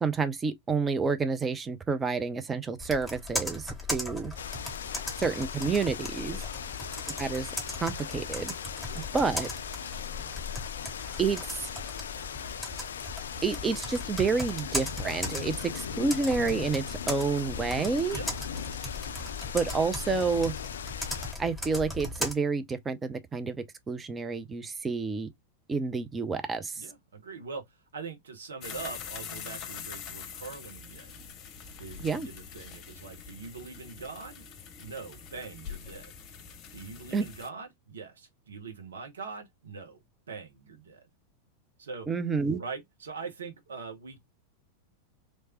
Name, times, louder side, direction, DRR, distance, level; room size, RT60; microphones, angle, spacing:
voice 1, 0.0-4.3 5.2-6.4 7.2-7.5 7.8-8.5 9.0-9.5 11.2-11.7 13.4-18.2 19.5-20.5 21.4-23.6 23.9-25.3 25.7-26.8 32.0-32.3 37.1-37.3 42.1-42.6, right 4 dB, 15° right, 0.6 m, -29 dB
Computer keyboard, 2.8-22.3, left 2 dB, ahead, 1.8 m, -38 dB
sound 1, 4.4-21.3, left 8 dB, 65° left, 0.3 m, -39 dB
voice 2, 26.8-31.1 31.8-34.4 34.8-36.1 36.7-40.0 40.3-41.1 41.8-42.1 42.6-44.2, right 4 dB, 65° right, 1.1 m, -42 dB
sound 2, 28.6-37.5, left 7 dB, 35° left, 0.8 m, -44 dB
3.2 x 3.2 x 2.8 m
figure-of-eight pair, 90°, 0 cm